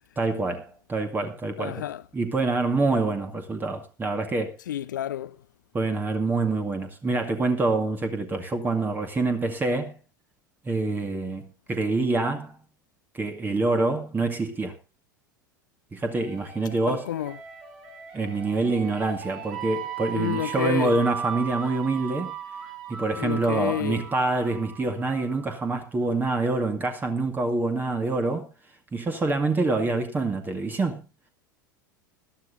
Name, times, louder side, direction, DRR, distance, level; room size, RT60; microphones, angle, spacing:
voice 1, 0.2-1.8 2.1-4.5 5.7-10.0 10.6-12.6 13.1-14.7 15.9-17.1 18.1-22.3 22.9-28.5 28.9-31.0, right 3 dB, 15° right, 2.2 m, -26 dB
voice 2, 1.6-2.0 4.7-5.3 16.9-17.4 20.1-21.0 23.2-24.0, left 11 dB, 65° left, 0.8 m, -29 dB
sound 1, 16.1-25.7, right 7 dB, 55° right, 6.8 m, -38 dB
20.5 x 13.0 x 2.7 m
figure-of-eight pair, 80°, 11 cm